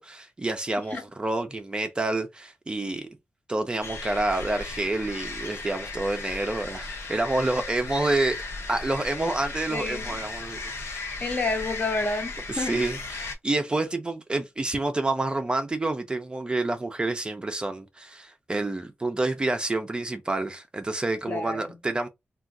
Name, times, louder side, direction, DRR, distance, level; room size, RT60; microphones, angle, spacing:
voice 1, 0.0-3.1 3.5-10.6 10.9-11.0 12.5-22.1, right 2 dB, 20° right, 0.4 m, -28 dB
sound 1, 3.8-13.3, left 3 dB, 80° left, 0.6 m, -36 dB
voice 2, 9.7-10.2 11.2-12.8 21.3-21.6, left 3 dB, 35° left, 0.8 m, -29 dB
2.4 x 2.3 x 3.6 m
wide cardioid pair, 135°, 4 cm